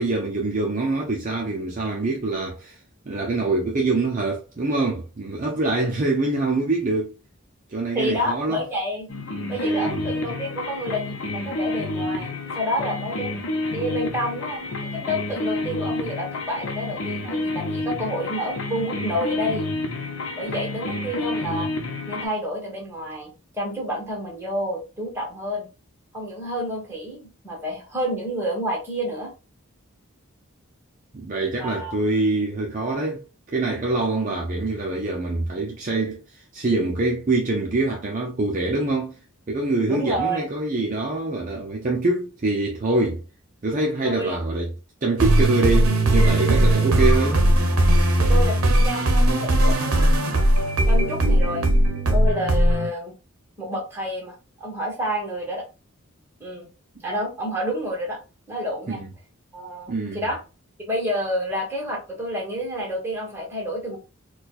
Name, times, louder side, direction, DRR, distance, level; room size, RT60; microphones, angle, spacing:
voice 1, 0.0-2.8 3.1-7.1 7.7-8.6 9.6-10.0 31.1-39.2 39.5-43.2 43.6-44.7 45.0-47.4 58.9-59.1 59.9-60.2, right 2 dB, 35° right, 0.5 m, -25 dB
voice 2, 7.9-9.1 9.5-13.4 13.7-19.7 20.3-21.7 22.1-25.7 26.1-29.3 31.6-32.0 39.9-40.4 44.0-44.4 48.3-50.5 50.9-51.6 52.1-53.1 53.6-55.6 56.4-56.7 57.0-58.2 58.5-59.0 59.5-60.4 60.9-64.0, equal, 10° right, 1.2 m, -29 dB
sound 1, 9.1-22.3, left 2 dB, 60° left, 0.7 m, -29 dB
sound 2, 45.2-52.9, right 1 dB, 80° right, 0.7 m, -18 dB
4.3 x 2.3 x 2.3 m
head